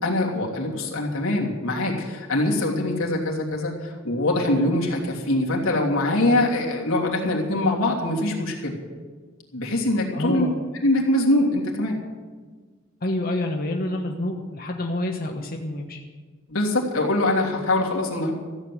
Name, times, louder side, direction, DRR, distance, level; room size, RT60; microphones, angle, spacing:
voice 1, 0.0-8.7 9.5-10.5 10.8-12.0 16.5-18.3, left 1 dB, 90° left, -2 dB, 3.1 m, -23 dB
voice 2, 10.1-10.5 13.0-16.0, left 1 dB, 45° left, 1 dB, 1.2 m, -28 dB
14.5 x 8.1 x 9.5 m, 1.5 s
head